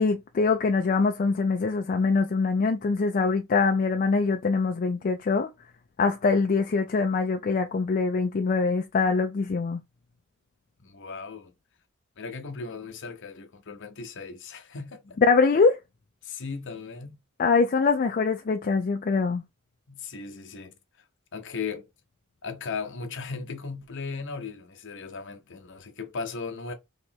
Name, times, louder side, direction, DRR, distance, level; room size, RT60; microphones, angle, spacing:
voice 1, 0.0-5.5 6.0-9.8 15.3-15.8 17.4-19.4, left 4 dB, 40° left, 0.4 m, -23 dB
voice 2, 10.8-11.5 12.2-15.2 16.2-17.2 19.9-20.7 21.3-21.9 22.4-26.7, left 4 dB, 60° left, 0.8 m, -37 dB
3.3 x 2.8 x 4.3 m
head